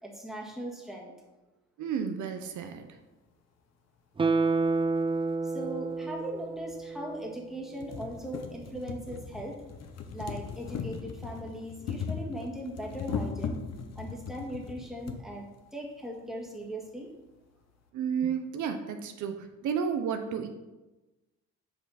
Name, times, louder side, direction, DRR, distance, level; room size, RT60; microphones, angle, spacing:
voice 1, 0.0-1.1 5.4-9.6 10.1-13.6 14.0-15.5 15.7-17.1, right 1 dB, ahead, -1 dB, 1.7 m, -39 dB
voice 2, 1.8-2.9 17.9-20.5, right 7 dB, 75° right, 7 dB, 0.7 m, -32 dB
Guitar, 4.2-7.4 7.8-7.9, right 3 dB, 20° right, 0.4 m, -29 dB
sound 1, 5.6-5.7 6.7-6.8 7.2-7.3 7.6-15.2 16.1-16.2 16.5-16.6, left 6 dB, 60° left, 0.9 m, -38 dB
7.5 x 5.0 x 4.1 m, 1.1 s
cardioid pair, 90°, 30 cm